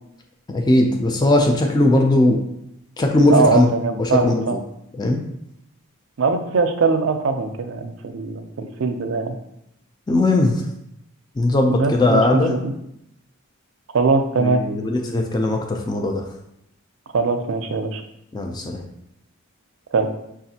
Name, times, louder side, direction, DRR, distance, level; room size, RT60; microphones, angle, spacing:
voice 1, 0.5-2.4 3.0-3.7 4.0-4.4 4.9-5.2 10.1-10.6 11.4-12.5 14.4-16.2 18.3-18.8, left 2 dB, 20° left, 2 dB, 0.3 m, -18 dB
voice 2, 3.3-4.6 6.2-9.4 11.7-12.7 13.9-14.6 17.1-18.0 19.9-20.1, right 4 dB, 65° right, 6 dB, 0.4 m, -21 dB
5.8 x 2.4 x 2.7 m, 0.81 s
head